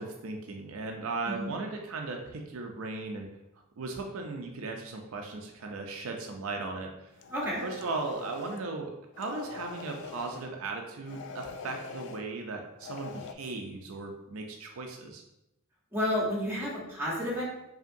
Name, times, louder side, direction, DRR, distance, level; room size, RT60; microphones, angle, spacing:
voice 1, 0.0-3.3 3.8-7.1 7.4-8.9 9.2-15.2, right 3 dB, 65° right, 2 dB, 0.4 m, -37 dB
sound 1, 7.1-8.7 9.1-10.5 11.0-12.2 12.8-13.3, left 5 dB, 55° left, 0.3 m, -43 dB
voice 2, 7.3-7.6 15.9-17.4, left 1 dB, 10° right, -6 dB, 1.1 m, -31 dB
5.1 x 2.8 x 2.6 m, 0.91 s
head